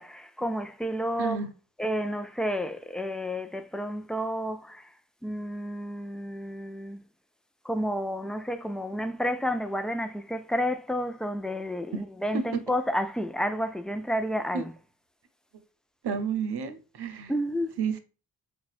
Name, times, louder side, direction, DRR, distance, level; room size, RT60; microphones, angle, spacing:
voice 1, 0.0-1.4 1.8-4.9 5.2-7.0 7.6-14.7 17.3-17.8, equal, ahead, 0.3 m, -30 dB
voice 2, 1.2-1.5 11.9-12.0 12.3-12.6 14.5-14.6 16.0-17.3 17.8-18.0, right 6 dB, 85° right, 0.8 m, -31 dB
6.0 x 2.3 x 2.3 m
wide cardioid pair, 110°, 39 cm